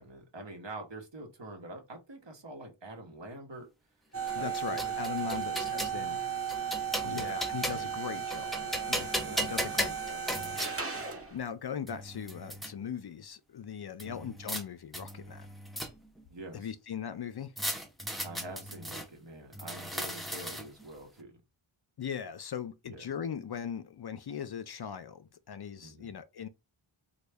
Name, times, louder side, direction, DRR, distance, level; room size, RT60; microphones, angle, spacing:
voice 1, 0.0-3.7 4.3-6.3 7.0-7.4 8.1-8.9 9.1-10.3 14.0-14.3 16.3-16.7 18.2-21.4 22.8-23.1 25.8-26.2, right 2 dB, 60° right, 1.0 m, -46 dB
sound 1, 4.1-11.4, right 7 dB, 30° right, 0.8 m, -35 dB
voice 2, 4.3-6.2 7.0-8.5 8.9-9.1 9.4-10.7 11.3-15.5 16.5-17.5 22.0-26.5, left 8 dB, 55° left, 0.5 m, -39 dB
sound 2, 4.3-6.0 6.5-8.0 8.3-10.7 11.5-11.6 11.9-12.7 14.0-14.6 14.9-16.2 17.6-19.1 19.5-20.8, equal, ahead, 0.5 m, -36 dB
3.1 x 2.3 x 3.4 m
wide cardioid pair, 45°, 50 cm